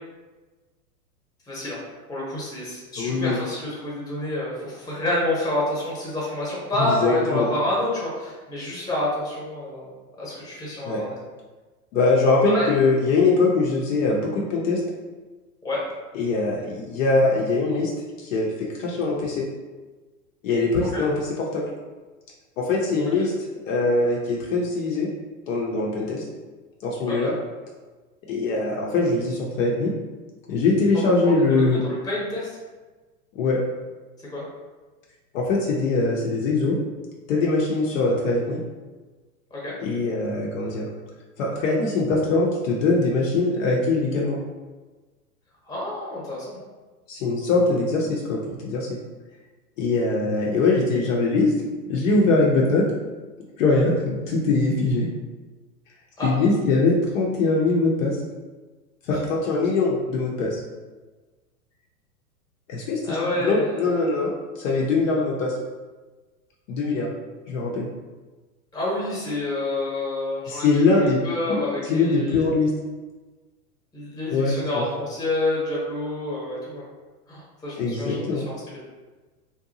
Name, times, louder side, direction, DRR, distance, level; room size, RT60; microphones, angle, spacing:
voice 1, 1.5-1.8 2.1-9.9 10.2-11.1 12.4-12.7 15.6-15.8 20.9-21.0 27.1-27.3 31.2-32.5 34.3-34.5 39.5-39.8 45.6-46.6 56.2-56.3 59.1-59.2 63.0-63.8 68.7-72.5 73.9-76.8 77.3-78.8, left 1 dB, 10° left, -6 dB, 0.8 m, -28 dB
voice 2, 3.0-3.4 6.8-7.5 10.8-11.0 11.9-14.8 16.1-17.9 18.2-19.5 20.4-21.7 22.6-23.3 23.7-25.1 25.5-26.2 26.8-27.3 28.3-29.9 30.5-31.8 33.4-33.6 35.3-36.8 37.3-38.6 39.8-40.9 41.4-44.4 47.1-49.0 49.8-51.5 51.9-52.8 53.6-55.1 56.2-58.2 59.1-60.6 62.7-63.0 63.4-64.3 64.6-65.5 66.7-67.1 67.5-67.9 70.5-71.2 71.5-71.6 71.9-72.7 74.3-74.8 77.8-78.4, left 3 dB, 55° left, -2 dB, 0.6 m, -22 dB
2.6 x 2.2 x 2.6 m, 1.3 s
hypercardioid pair, 120°, 47 cm